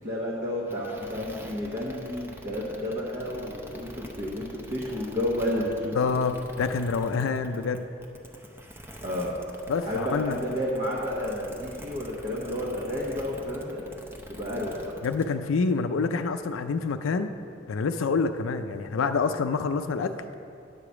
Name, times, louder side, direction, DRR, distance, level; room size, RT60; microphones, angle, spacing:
voice 1, 0.0-6.2 9.0-9.4 9.8-13.8 14.3-14.9, left 1 dB, 35° right, -6 dB, 1.1 m, -31 dB
sound 1, 0.7-15.3, equal, 10° right, 0.6 m, -45 dB
voice 2, 6.0-7.9 9.7-10.4 15.0-17.3 17.7-20.1, left 4 dB, 85° left, 8 dB, 0.4 m, -27 dB
9.8 x 4.9 x 7.0 m, 2.5 s
head